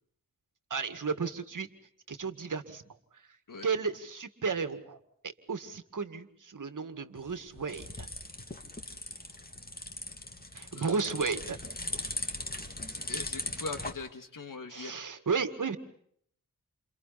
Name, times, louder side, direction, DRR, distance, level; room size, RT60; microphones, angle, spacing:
voice 1, 0.7-1.7 2.1-2.8 3.6-8.1 10.5-11.6 14.7-15.8, right 5 dB, 65° right, 9 dB, 2.1 m, -33 dB
sound 1, 7.2-13.9, left 2 dB, 25° left, 2.7 m, -39 dB
voice 2, 12.9-15.0, left 4 dB, 70° left, 7 dB, 2.6 m, -41 dB
29.5 x 28.5 x 4.2 m, 0.65 s
wide cardioid pair, 80°, 33 cm